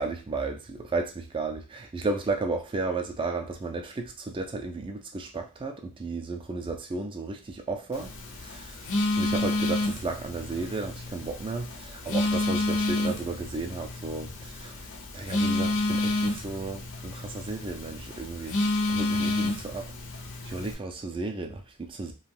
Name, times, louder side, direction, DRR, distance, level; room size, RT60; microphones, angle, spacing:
voice 1, 0.0-14.9 15.1-18.6 18.9-19.9 20.4-22.1, right 3 dB, 25° right, 5 dB, 0.4 m, -33 dB
Telephone, 7.9-20.7, left 2 dB, 60° left, 0.6 m, -30 dB
2.4 x 2.2 x 3.3 m, 0.32 s
head